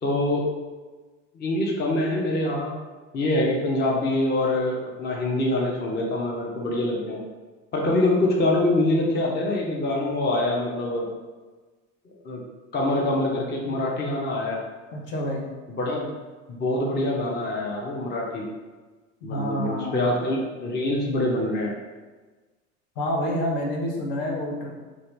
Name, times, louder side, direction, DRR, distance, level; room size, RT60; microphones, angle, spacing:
voice 1, 0.0-0.5 1.3-2.8 3.1-7.2 7.7-11.1 12.2-12.4 12.7-14.6 15.7-16.1 16.5-18.5 19.2-21.7, left 1 dB, 25° left, -1 dB, 0.6 m, -25 dB
voice 2, 14.9-15.4 19.2-20.1 23.0-24.7, equal, 60° left, -1 dB, 0.9 m, -28 dB
2.7 x 2.5 x 3.2 m, 1.3 s
hypercardioid pair, 80°, 39 cm